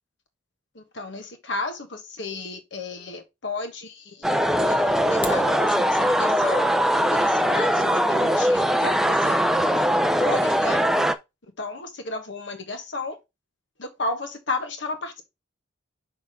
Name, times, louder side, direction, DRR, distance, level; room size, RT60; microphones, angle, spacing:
voice 1, 0.7-6.7 7.1-10.8 11.6-13.2 13.8-15.3, left 3 dB, 60° left, 1.3 m, -33 dB
sound 1, 4.2-11.1, equal, ahead, 0.3 m, -21 dB
sound 2, 5.0-5.5, left 4 dB, 25° left, 1.0 m, -37 dB
6.2 x 3.6 x 4.8 m
head